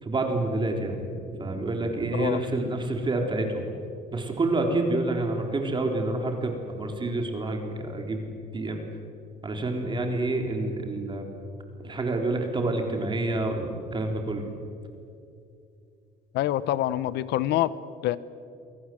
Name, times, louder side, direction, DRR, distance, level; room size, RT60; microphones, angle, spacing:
voice 1, 0.0-3.7 4.1-8.2 8.5-8.8 9.4-11.3 11.8-14.5, right 2 dB, 30° right, 3 dB, 3.9 m, -28 dB
voice 2, 16.3-17.7 18.0-18.2, left 14 dB, 80° left, 17 dB, 1.0 m, -25 dB
28.0 x 23.5 x 7.8 m, 2.6 s
cardioid pair, 110°, 17 cm